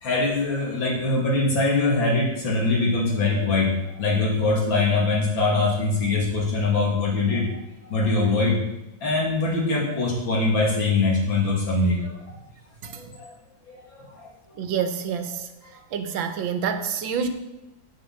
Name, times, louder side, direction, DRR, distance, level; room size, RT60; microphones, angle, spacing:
voice 1, 0.0-3.7 4.0-7.5 7.9-8.6 9.0-12.1 13.0-13.1 14.0-14.1, left 3 dB, 85° left, -2 dB, 3.3 m, -22 dB
voice 2, 14.6-15.5 15.9-17.3, right 7 dB, 85° right, 8 dB, 1.7 m, -27 dB
8.6 x 6.7 x 7.8 m, 0.94 s
omnidirectional pair, 2.1 m